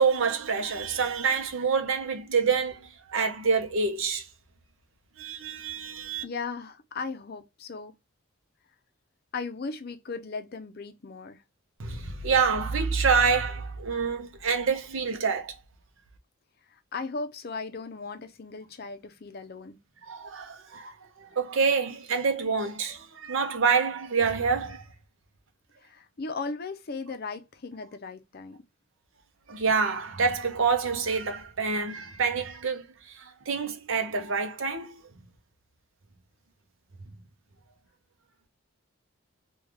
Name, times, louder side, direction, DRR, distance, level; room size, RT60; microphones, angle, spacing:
voice 1, 0.0-4.3 5.2-6.2 11.8-15.5 20.1-20.9 21.2-24.8 29.5-35.0, right 5 dB, 65° right, 0.7 m, -27 dB
voice 2, 6.2-7.9 9.3-11.4 16.7-19.8 25.8-28.6, left 4 dB, 45° left, 0.5 m, -37 dB
3.2 x 2.3 x 3.5 m
head